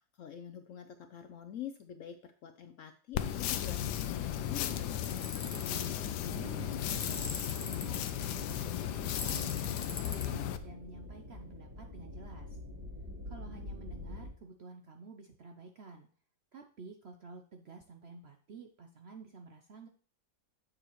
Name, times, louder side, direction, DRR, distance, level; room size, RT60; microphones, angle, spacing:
voice 1, 0.0-4.9, left 9 dB, 70° left, 8 dB, 0.8 m, -46 dB
sound 1, 3.1-10.6, left 11 dB, 90° left, 1.2 m, -35 dB
Tools, 5.0-5.8 6.9-8.0 9.2-10.2, left 3 dB, 30° left, 0.9 m, -41 dB
voice 2, 5.5-12.5 13.3-16.1 16.5-19.9, right 4 dB, 60° right, 4 dB, 0.7 m, -51 dB
sound 2, 6.2-14.3, left 1 dB, 10° right, 2.3 m, -46 dB
7.6 x 6.9 x 3.0 m, 0.43 s
omnidirectional pair, 1.8 m